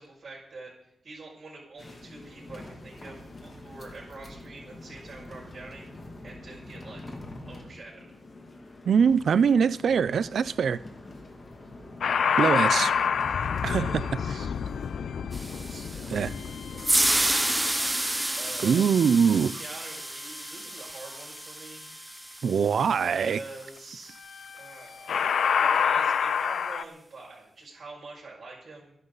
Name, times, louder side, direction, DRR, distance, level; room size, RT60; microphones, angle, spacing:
voice 1, 0.0-5.9 6.2-7.0 7.4-8.1 13.7-14.5 15.6-17.0 18.4-18.8 19.5-21.8 22.8-24.2 24.5-29.0, right 3 dB, 40° right, 6.3 m, -45 dB
sound 1, 1.8-16.8, left 2 dB, 30° left, 2.5 m, -45 dB
voice 2, 8.9-10.8 12.4-12.9 13.6-14.0 16.1-16.3 18.6-19.6 22.4-23.4, right 6 dB, 65° right, 0.6 m, -23 dB
sound 2, 12.0-19.2 24.4-24.7 25.1-26.8, left 7 dB, 70° left, 0.6 m, -28 dB
sound 3, 15.3-23.6, right 1 dB, 10° right, 0.7 m, -30 dB
27.0 x 11.0 x 4.1 m
wide cardioid pair, 175°, 0 cm